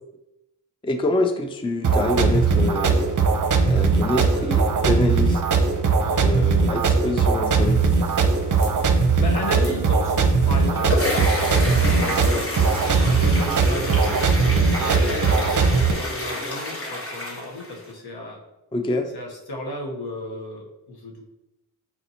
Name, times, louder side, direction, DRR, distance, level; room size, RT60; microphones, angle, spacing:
voice 1, 0.8-3.1 3.6-5.4 6.2-7.8 18.7-19.1, left 2 dB, 15° left, 6 dB, 0.4 m, -26 dB
sound 1, 1.8-15.9, right 4 dB, 50° right, 0.6 m, -20 dB
sound 2, 7.6-12.7, left 3 dB, 90° left, 0.9 m, -46 dB
voice 2, 8.6-10.9 11.4-12.5 12.9-18.4 19.1-21.2, left 2 dB, 65° left, 0 dB, 1.1 m, -34 dB
sound 3, 10.6-17.9, left 1 dB, 35° left, 1.2 m, -29 dB
4.3 x 4.0 x 2.8 m, 0.92 s
cardioid pair, 40°, 41 cm